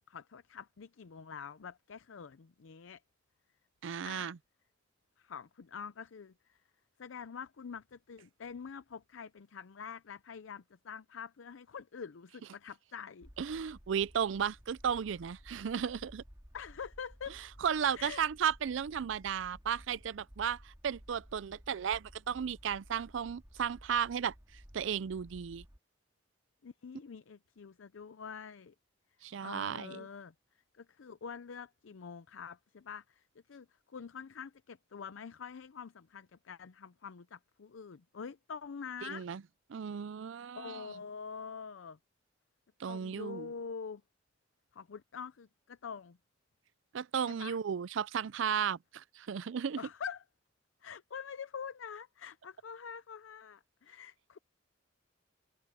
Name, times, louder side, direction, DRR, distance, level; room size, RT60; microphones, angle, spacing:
voice 1, 0.0-3.0 4.0-4.3 5.2-6.6 7.0-13.3 16.5-17.4 17.9-18.2 26.6-28.7 29.4-30.3 30.7-39.3 40.6-42.0 42.9-44.0 44.7-46.2 47.3-47.6 49.8-50.2 50.8-54.4, left 6 dB, 85° left, 0.5 m, -46 dB
voice 2, 3.8-4.4 13.4-16.2 17.6-24.3 24.7-25.6 29.2-30.1 39.0-39.4 39.7-40.8 42.8-43.5 46.9-49.8, right 7 dB, 75° right, 0.4 m, -34 dB
sound 1, 13.2-25.8, equal, 15° right, 3.2 m, -56 dB
head